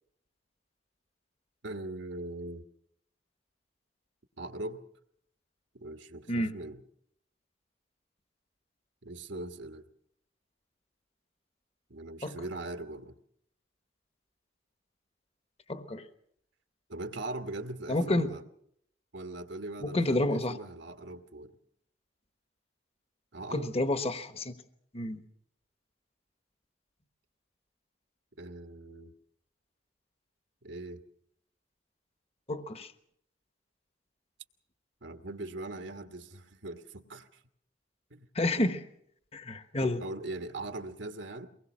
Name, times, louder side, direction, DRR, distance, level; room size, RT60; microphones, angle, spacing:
voice 1, 1.6-2.6 4.4-4.8 5.7-6.8 9.0-9.9 11.9-13.1 16.9-18.4 19.1-21.6 23.3-23.7 28.4-29.1 30.6-31.0 35.0-37.4 38.1-38.3 39.8-41.5, right 2 dB, 75° right, 7 dB, 1.5 m, -40 dB
voice 2, 15.7-16.0 17.9-18.3 19.8-20.6 23.5-24.5 24.9-25.2 32.5-32.9 38.3-38.8 39.3-40.0, left 1 dB, 35° left, 10 dB, 1.2 m, -29 dB
23.5 x 20.5 x 6.2 m, 0.70 s
head